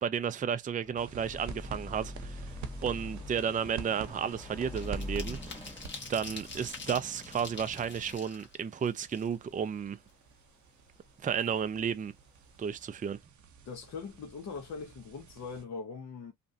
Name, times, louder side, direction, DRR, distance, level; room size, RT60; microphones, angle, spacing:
voice 1, 0.0-2.5 2.8-5.4 6.1-10.0 11.2-12.1 12.6-13.2, right 7 dB, 25° right, 0.4 m, -32 dB
Car passing by / Accelerating revving vroom, 0.8-8.2, left 1 dB, 15° left, 1.4 m, -44 dB
sound 1, 1.0-15.6, right 6 dB, 65° right, 0.8 m, -49 dB
sound 2, 2.7-2.9 3.3-9.7 10.1-10.2 10.5-11.5 11.8-11.9 12.2-12.5, left 4 dB, 35° left, 1.2 m, -46 dB
voice 2, 13.6-16.3, left 5 dB, 60° left, 0.9 m, -41 dB
2.9 x 2.5 x 2.6 m
cardioid pair, 75°, 31 cm